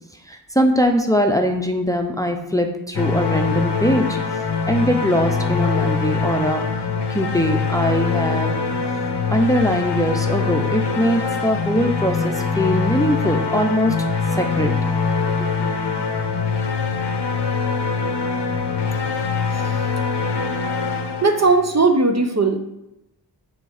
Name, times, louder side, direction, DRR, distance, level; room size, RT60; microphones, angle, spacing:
voice 1, 0.3-4.2 4.7-6.6 7.1-8.6 9.3-14.0 14.4-14.7 15.5-15.6, equal, 10° left, 3 dB, 0.7 m, -21 dB
sound 1, 2.9-21.9, left 4 dB, 70° left, 0.8 m, -23 dB
voice 2, 19.5-19.8 21.2-22.6, right 3 dB, 40° right, 6 dB, 0.7 m, -18 dB
6.7 x 3.8 x 4.9 m, 0.87 s
wide cardioid pair, 60°, 43 cm